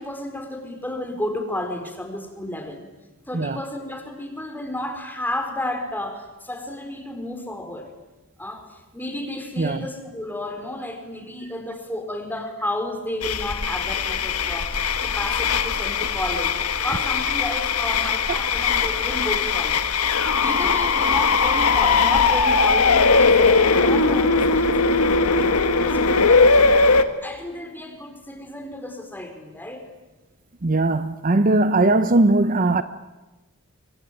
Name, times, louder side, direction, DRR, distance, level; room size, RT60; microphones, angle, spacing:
voice 1, 0.0-2.9 3.3-7.9 8.4-19.8 20.4-26.8 27.2-29.9, left 1 dB, 10° left, 4.3 m, -32 dB
voice 2, 9.6-9.9 26.1-26.2 30.6-32.8, right 2 dB, 40° right, 0.8 m, -19 dB
sound 1, 13.2-27.0, left 4 dB, 85° left, 1.6 m, -19 dB
25.0 x 24.5 x 9.2 m
head